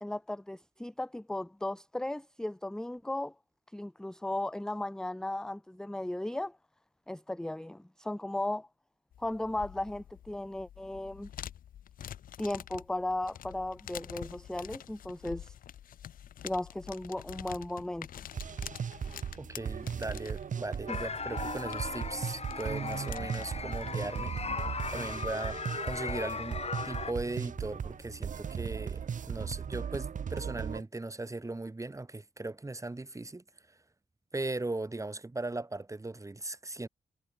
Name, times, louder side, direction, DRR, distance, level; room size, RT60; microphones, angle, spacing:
voice 1, 0.0-3.3 3.7-6.6 7.1-8.7 9.2-11.3 12.4-15.5 16.4-18.1 20.9-21.0, left 1 dB, 5° left, 0.5 m, -36 dB
sound 1, 9.1-28.2, left 10 dB, 80° left, 4.7 m, -49 dB
sound 2, 18.3-30.8, right 7 dB, 65° right, 3.3 m, -37 dB
voice 2, 19.4-24.3 24.9-33.4 34.3-36.9, right 2 dB, 20° right, 1.8 m, -38 dB
sound 3, 20.9-27.1, left 4 dB, 50° left, 3.8 m, -38 dB
supercardioid pair, 45°, 14 cm